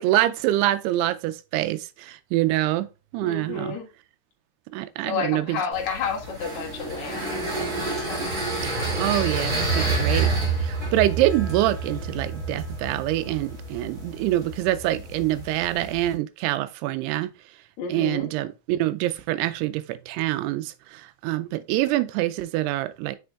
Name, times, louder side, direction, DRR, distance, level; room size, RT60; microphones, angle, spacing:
voice 1, 0.0-2.9 3.1-3.7 4.7-5.6 9.0-10.3 10.6-17.3 17.9-23.2, right 15 dB, 90° right, 2.6 m, -25 dB
voice 2, 3.2-3.9 5.0-8.3 17.8-18.3, left 6 dB, 55° left, 2.4 m, -31 dB
sound 1, 5.7-16.1, right 3 dB, 25° right, 2.4 m, -29 dB
7.9 x 5.2 x 2.4 m
omnidirectional pair, 4.6 m